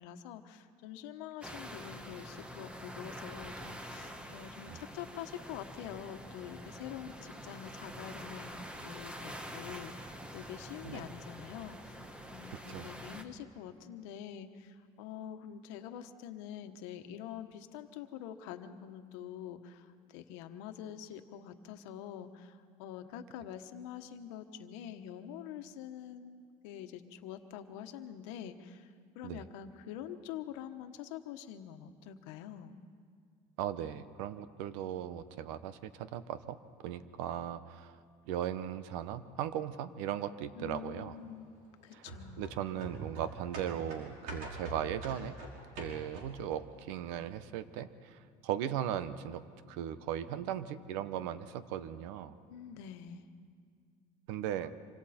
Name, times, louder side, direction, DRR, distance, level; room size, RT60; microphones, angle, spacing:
voice 1, 0.0-12.0 12.3-32.8 40.5-41.5 41.8-42.4 52.5-53.2, left 10 dB, 85° left, 8 dB, 1.2 m, -46 dB
sound 1, 1.4-13.2, equal, 5° right, 1.1 m, -46 dB
voice 2, 12.5-12.9 29.2-29.4 33.6-36.6 36.8-38.0 38.3-41.2 41.9-42.1 42.4-45.4 45.8-49.4 49.7-52.4 54.3-54.7, right 10 dB, 85° right, 13 dB, 1.0 m, -38 dB
sound 2, 42.1-46.5 46.9-47.0, right 2 dB, 70° right, 4.8 m, -45 dB
26.0 x 25.5 x 4.3 m, 2.1 s
cardioid pair, 155°, 15 cm